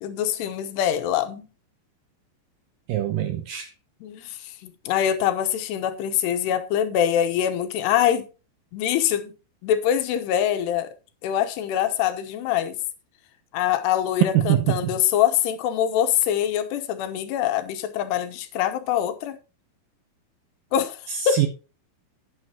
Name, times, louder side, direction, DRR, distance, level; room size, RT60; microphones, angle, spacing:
voice 1, 0.0-1.5 4.0-8.3 8.7-9.3 9.6-10.9 11.2-12.8 13.5-19.4 20.7-21.5, left 10 dB, 80° left, 3.0 m, -24 dB
voice 2, 2.9-3.7 14.3-14.8 21.3-21.5, right 12 dB, 80° right, 2.0 m, -23 dB
9.8 x 9.1 x 2.8 m
omnidirectional pair, 4.8 m